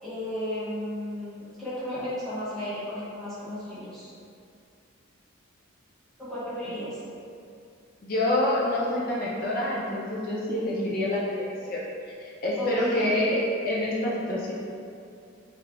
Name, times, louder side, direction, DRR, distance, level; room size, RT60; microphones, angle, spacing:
voice 1, 0.0-4.1 6.2-7.0 12.6-13.1, left 1 dB, ahead, -14 dB, 1.0 m, -34 dB
voice 2, 8.0-11.8 12.2-14.5, left 1 dB, 45° left, -5 dB, 0.4 m, -27 dB
3.3 x 3.2 x 2.4 m, 2.4 s
head